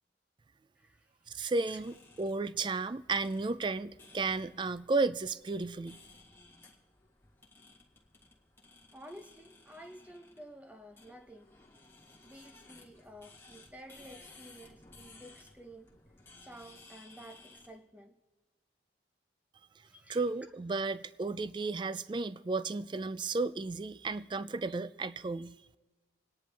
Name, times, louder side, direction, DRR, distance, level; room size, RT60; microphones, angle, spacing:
voice 1, 0.8-1.1 1.6-1.8 8.9-11.5 12.2-15.9 16.4-18.2 19.9-20.2, equal, 10° right, 0.7 m, -52 dB
voice 2, 1.3-6.0 20.1-25.6, right 3 dB, 25° right, 0.3 m, -33 dB
sound 1, 1.8-17.8, left 3 dB, 15° left, 1.8 m, -58 dB
26.5 x 10.0 x 3.4 m
head